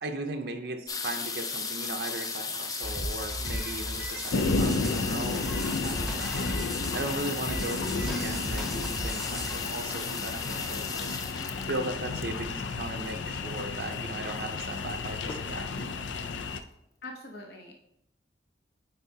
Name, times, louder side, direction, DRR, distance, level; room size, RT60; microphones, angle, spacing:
voice 1, 0.0-6.5 6.9-11.2 11.7-15.9, right 2 dB, 65° right, 4 dB, 0.6 m, -37 dB
sound 1, 0.9-13.4 14.2-14.3 14.5-14.9 15.2-15.8 16.3-16.4 16.6-16.7, left 4 dB, 20° left, 0.4 m, -37 dB
sound 2, 2.8-9.6, right 1 dB, ahead, 0.8 m, -37 dB
sound 3, 4.3-16.6, left 4 dB, 90° left, 0.5 m, -32 dB
voice 2, 17.0-17.7, left 2 dB, 60° left, 1 dB, 0.8 m, -42 dB
8.2 x 4.7 x 2.7 m, 0.80 s
head